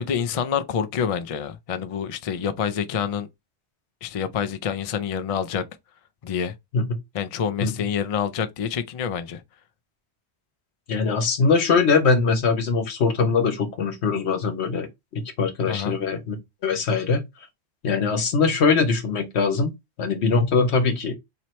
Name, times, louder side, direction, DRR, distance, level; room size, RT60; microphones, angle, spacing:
voice 1, 0.0-3.3 4.0-5.6 6.2-6.5 7.1-9.4 15.7-16.0, left 7 dB, 50° left, 0.4 m, -27 dB
voice 2, 10.9-14.9 15.1-16.4 16.6-17.2 17.8-19.7 20.0-21.1, left 4 dB, 80° left, 1.2 m, -22 dB
4.4 x 2.8 x 3.1 m
omnidirectional pair, 1.1 m